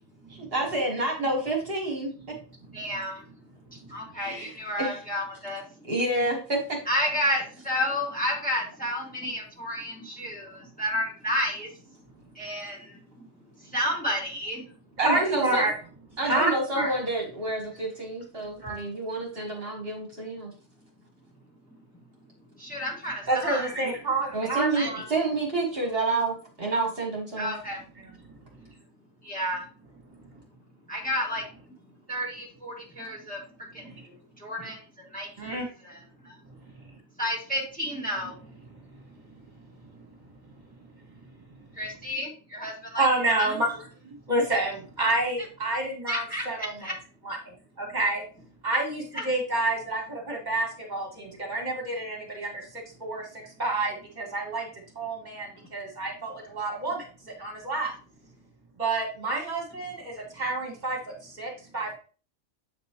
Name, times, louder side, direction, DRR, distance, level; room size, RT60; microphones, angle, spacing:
voice 1, 0.3-2.1 4.2-4.5 4.8-5.0 5.9-6.8 15.0-15.6 16.2-20.5 24.3-27.5, right 2 dB, 50° right, 0 dB, 1.5 m, -28 dB
voice 2, 2.7-3.2 3.7-5.6 6.8-11.7 12.3-13.0 13.7-14.6 22.6-23.7 24.2-25.0 27.4-27.8 29.2-29.6 30.9-31.5 32.1-33.4 33.7-33.9 34.4-36.3 37.2-38.4 41.8-43.6 46.1-46.9 49.1-49.3, equal, 5° left, -3 dB, 1.6 m, -31 dB
voice 3, 15.0-15.7 16.2-16.9 18.6-18.8 23.3-25.0 28.3-28.4 35.4-35.7 43.0-46.7 47.3-48.3 48.6-54.7 55.0-57.9 58.8-61.9, right 2 dB, 35° right, 0 dB, 1.9 m, -29 dB
8.0 x 5.3 x 2.9 m, 0.38 s
omnidirectional pair, 1.3 m